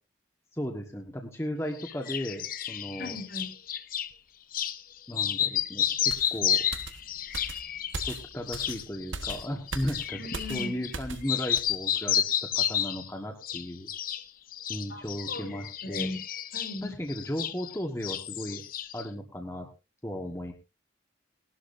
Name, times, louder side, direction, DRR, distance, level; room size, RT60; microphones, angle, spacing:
voice 1, 0.5-3.2 5.1-6.6 8.1-10.2 10.5-12.2 12.6-13.9 14.7-16.1 16.8-18.6 18.9-19.7 20.0-20.5, equal, 15° left, 2 dB, 1.5 m, -35 dB
sound 1, 1.8-4.1 4.5-4.8 5.1-11.0 11.2-13.1 13.4-14.2 14.5-17.8 18.0-19.1, left 9 dB, 45° left, 0.7 m, -31 dB
voice 2, 3.0-3.6 10.1-10.8 14.9-15.0 15.3-15.5 15.8-16.2 16.5-16.9, left 1 dB, 75° left, 0 dB, 4.5 m, -37 dB
sound 2, 6.1-11.3 11.6-11.8, right 3 dB, 85° right, 1.4 m, -40 dB
19.0 x 12.0 x 2.7 m, 0.29 s
head